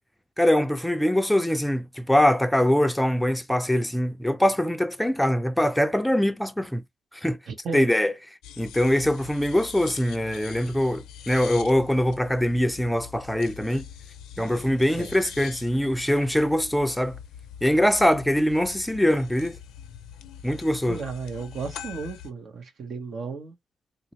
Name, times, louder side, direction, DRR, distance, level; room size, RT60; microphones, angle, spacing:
voice 1, 0.4-6.8 7.1-7.4 7.7-8.1 8.6-13.9 14.4-17.2 17.6-19.6 20.4-21.0, left 1 dB, 5° left, 0.5 m, -23 dB
voice 2, 7.5-7.9 15.0-15.1 20.9-23.5, right 5 dB, 60° right, 0.9 m, -34 dB
sound 1, 8.4-22.3, left 9 dB, 85° left, 0.5 m, -43 dB
3.9 x 2.1 x 2.9 m
cardioid pair, 90°, 0 cm